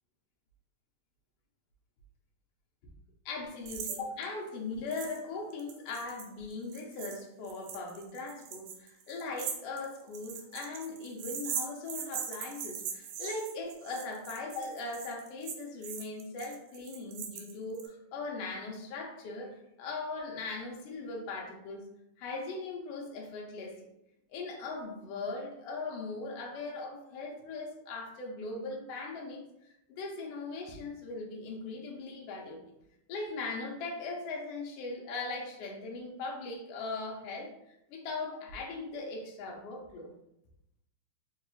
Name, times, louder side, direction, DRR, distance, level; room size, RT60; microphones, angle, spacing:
voice 1, 3.2-21.8 22.2-23.9 24.3-32.6 33.1-40.1, left 3 dB, 75° left, -1 dB, 1.5 m, -39 dB
sound 1, 3.7-4.0 4.2-4.3 4.9-5.2 5.5-17.9, right 7 dB, 85° right, 2.1 m, -40 dB
4.6 x 2.5 x 3.0 m, 0.81 s
omnidirectional pair, 3.4 m